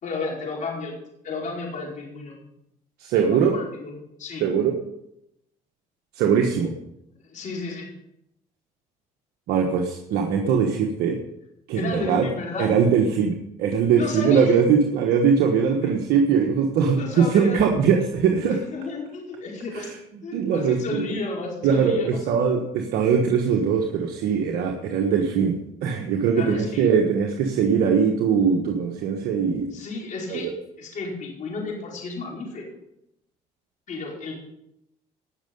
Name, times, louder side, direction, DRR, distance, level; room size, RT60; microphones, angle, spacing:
voice 1, 0.0-0.9 1.2-2.4 3.2-4.4 7.2-7.9 11.8-12.7 13.9-14.6 15.8-15.9 17.0-17.6 18.4-19.9 20.2-22.2 26.4-26.9 29.7-30.5 30.8-32.7 33.9-34.3, left 3 dB, 50° left, -2 dB, 5.0 m, -32 dB
voice 2, 3.0-3.5 4.4-4.8 6.1-6.8 9.5-11.2 11.7-12.3 12.6-18.6 19.7-19.9 20.3-21.0 21.6-29.7 30.3-30.5, right 6 dB, 80° right, 2 dB, 1.4 m, -21 dB
19.0 x 6.6 x 5.4 m, 0.81 s
cardioid pair, 85°, 16 cm